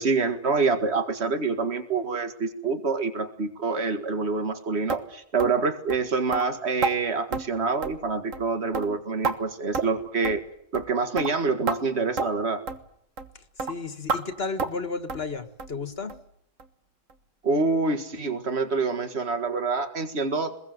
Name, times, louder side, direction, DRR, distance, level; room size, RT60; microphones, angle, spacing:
voice 1, 0.0-10.4 10.7-12.6 17.4-20.5, right 4 dB, 55° right, 2.2 m, -26 dB
sound 1, 4.9-5.0 5.4-5.6 5.9-6.0 6.3-6.5 6.8-7.0 7.3-7.5 7.8-8.1 8.3-8.5 8.7-9.4 9.7-10.0 10.2-10.4 10.7-10.9 11.2-11.3 11.7-11.8 12.2-12.3 12.7-12.8 13.2-13.3 13.6-13.7 14.1-14.2 14.6-14.8 15.1-15.3 15.6-15.8 16.1-16.2 16.6-16.7 17.1-17.2, right 4 dB, 85° right, 1.8 m, -29 dB
voice 2, 13.3-16.2, left 4 dB, 50° left, 1.7 m, -33 dB
26.0 x 21.5 x 7.9 m
omnidirectional pair, 1.3 m